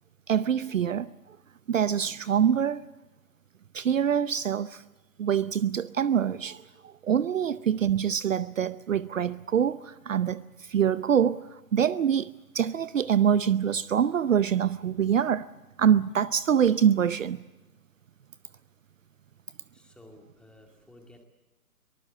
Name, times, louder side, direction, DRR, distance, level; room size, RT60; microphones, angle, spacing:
voice 1, 0.3-1.4 1.7-2.8 3.7-4.8 5.2-15.5 15.8-17.4, right 8 dB, 60° right, 0.7 m, -25 dB
voice 2, 19.7-21.2, left 1 dB, ahead, 2.1 m, -54 dB
24.0 x 19.5 x 7.6 m
figure-of-eight pair, 135°, 45 cm